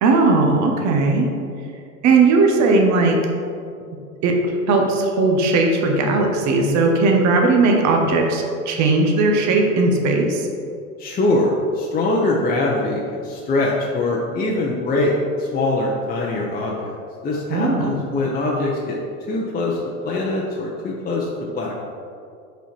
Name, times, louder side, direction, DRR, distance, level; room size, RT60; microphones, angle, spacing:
voice 1, 0.0-1.3 2.0-3.2 4.2-4.3 4.7-10.5 17.5-18.0, right 3 dB, 40° right, 2 dB, 1.0 m, -17 dB
voice 2, 11.0-16.9 17.2-19.0 19.3-19.8 20.0-21.3 21.5-21.8, left 2 dB, 20° left, -3 dB, 0.8 m, -22 dB
5.4 x 4.5 x 4.5 m, 2.4 s
hypercardioid pair, 90°, 44 cm